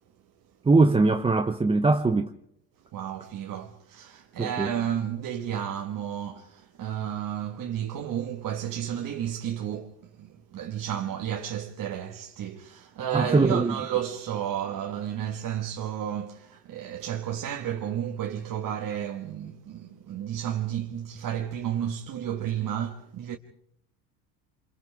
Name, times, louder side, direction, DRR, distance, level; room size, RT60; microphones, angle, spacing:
voice 1, 0.6-2.3 4.4-4.7 13.1-13.7, right 3 dB, 10° right, 0.7 m, -21 dB
voice 2, 2.9-23.4, right 10 dB, 40° right, 1.6 m, -32 dB
29.0 x 26.0 x 3.5 m
hypercardioid pair, 90°, 50 cm